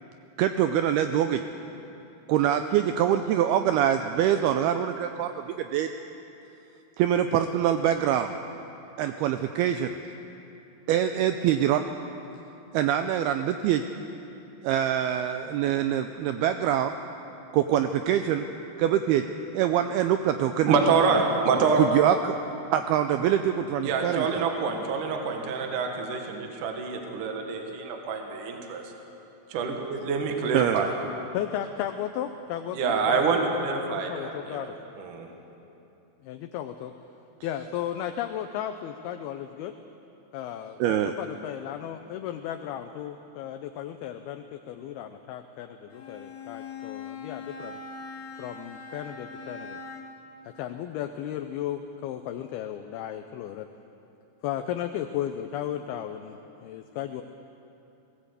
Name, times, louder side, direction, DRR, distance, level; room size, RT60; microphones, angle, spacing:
voice 1, 0.4-1.4 2.3-5.9 7.0-8.4 9.0-10.0 10.9-11.8 12.7-13.8 14.6-16.9 17.5-18.5 18.8-19.3 19.5-20.8 21.8-22.4 22.7-24.3 30.5-30.9 40.8-41.1, right 10 dB, 85° right, 8 dB, 2.2 m, -24 dB
voice 2, 20.7-21.8 23.8-28.8 29.5-30.9 32.7-35.3, right 5 dB, 55° right, 3 dB, 2.7 m, -26 dB
voice 3, 31.3-34.8 36.2-36.9 37.4-39.7 40.3-47.8 48.4-49.8 50.4-53.7 54.4-57.2, left 10 dB, 80° left, 7 dB, 2.3 m, -35 dB
Bowed string instrument, 45.9-50.3, left 4 dB, 65° left, 3.7 m, -41 dB
20.0 x 17.0 x 8.2 m, 2.8 s
omnidirectional pair, 5.1 m